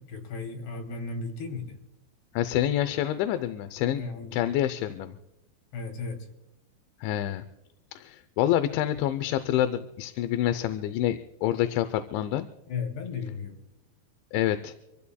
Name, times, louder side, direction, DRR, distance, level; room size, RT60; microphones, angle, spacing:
voice 1, 0.0-1.8 4.0-4.4 5.7-6.3 12.7-13.6, left 4 dB, 60° left, 3 dB, 4.6 m, -35 dB
voice 2, 2.3-4.0 4.3-5.2 7.0-7.5 7.9-12.5 14.3-14.7, left 12 dB, 80° left, 10 dB, 2.9 m, -27 dB
26.0 x 15.5 x 2.3 m, 0.96 s
omnidirectional pair, 5.5 m